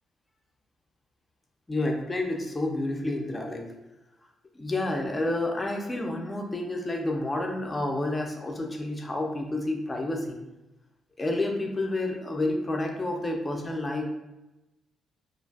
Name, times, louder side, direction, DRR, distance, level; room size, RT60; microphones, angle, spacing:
voice 1, 1.7-3.7 4.5-10.4 11.2-14.0, left 2 dB, 20° left, 2 dB, 0.4 m, -29 dB
2.5 x 2.3 x 2.3 m, 0.99 s
cardioid pair, 90°, 0 cm